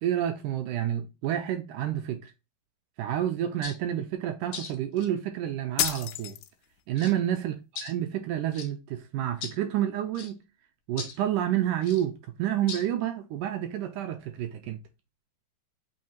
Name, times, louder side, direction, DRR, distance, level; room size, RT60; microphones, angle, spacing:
voice 1, 0.0-2.3 3.0-6.4 6.9-7.5 7.8-10.4 10.9-14.8, right 11 dB, 80° right, 1.9 m, -29 dB
sound 1, 3.6-3.8 4.5-5.1 5.8-6.0 7.0-7.2 7.8-7.9 8.5-8.7 9.4-9.6 10.1-10.3 11.0-11.2 11.8-12.0 12.7-12.9, left 6 dB, 65° left, 1.5 m, -39 dB
sound 2, 5.8-6.8, left 11 dB, 80° left, 1.9 m, -30 dB
5.6 x 2.9 x 2.8 m
omnidirectional pair, 4.1 m